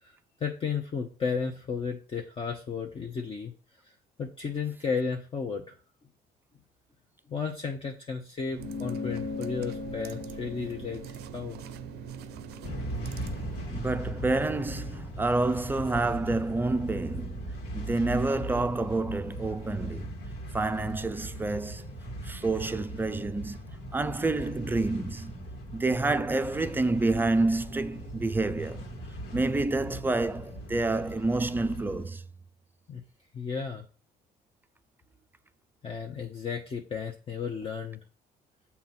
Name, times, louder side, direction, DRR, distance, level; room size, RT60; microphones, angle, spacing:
voice 1, 0.0-3.5 3.8-3.9 4.2-5.7 7.3-11.6 32.9-33.0 33.3-33.8 35.8-38.0, left 5 dB, 35° left, 0.8 m, -34 dB
sound 1, 8.4-13.8, right 12 dB, 75° right, 0.5 m, -44 dB
sound 2, 8.6-13.4, left 4 dB, 65° left, 0.7 m, -39 dB
sound 3, 12.6-32.1, right 1 dB, 80° left, 1.8 m, -39 dB
voice 2, 13.7-20.1 20.5-21.9 22.2-23.6 23.9-28.9 29.3-32.2, right 2 dB, 10° right, 0.4 m, -28 dB
7.1 x 2.9 x 5.9 m
cardioid pair, 110°, 17 cm